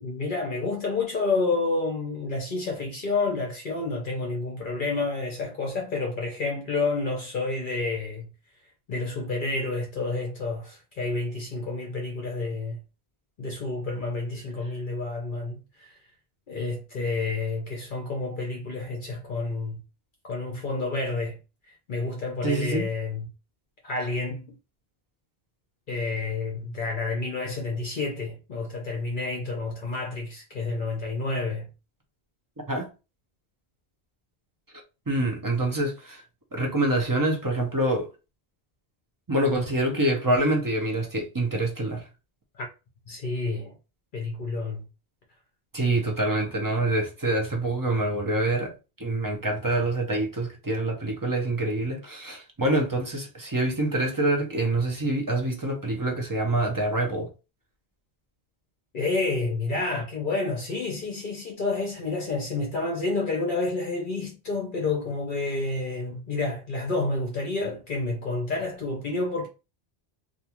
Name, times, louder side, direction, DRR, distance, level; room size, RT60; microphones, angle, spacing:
voice 1, 0.0-8.3 8.9-12.8 13.4-16.0 16.5-19.8 20.2-21.4 21.9-23.3 23.8-24.6 25.9-31.7 42.6-42.7 43.1-43.7 44.1-44.8 58.9-69.5, left 3 dB, 55° left, 0.7 m, -29 dB
voice 2, 22.4-22.9 32.7-32.9 35.1-36.2 36.5-38.1 39.3-42.0 45.7-48.7 49.0-57.3, right 1 dB, 25° right, 0.5 m, -26 dB
2.5 x 2.3 x 2.9 m
omnidirectional pair, 1.1 m